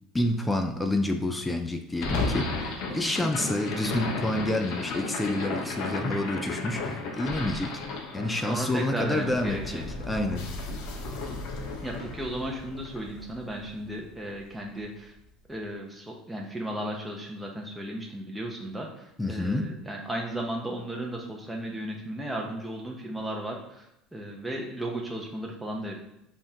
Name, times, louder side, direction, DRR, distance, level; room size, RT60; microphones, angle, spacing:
voice 1, 0.1-7.8 8.1-10.5 19.2-19.7, left 1 dB, 15° left, 6 dB, 0.5 m, -28 dB
sound 1, 1.9-14.2, left 3 dB, 65° left, 1.0 m, -34 dB
voice 2, 3.2-3.5 8.5-9.8 11.8-15.1 15.5-26.0, right 1 dB, 5° right, -1 dB, 0.9 m, -35 dB
5.2 x 3.6 x 2.9 m, 0.85 s
supercardioid pair, 90°, 0 cm